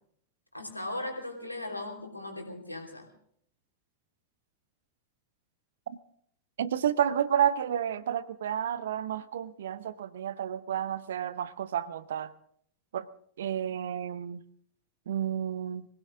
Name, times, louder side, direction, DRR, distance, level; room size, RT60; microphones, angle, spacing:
voice 1, 0.5-3.1, left 2 dB, 85° left, 3.2 m, -38 dB
voice 2, 6.6-12.3 12.9-13.1 13.4-14.4 15.1-15.9, right 9 dB, 60° right, 0.8 m, -30 dB
23.0 x 16.5 x 3.7 m
figure-of-eight pair, 90°, 0 cm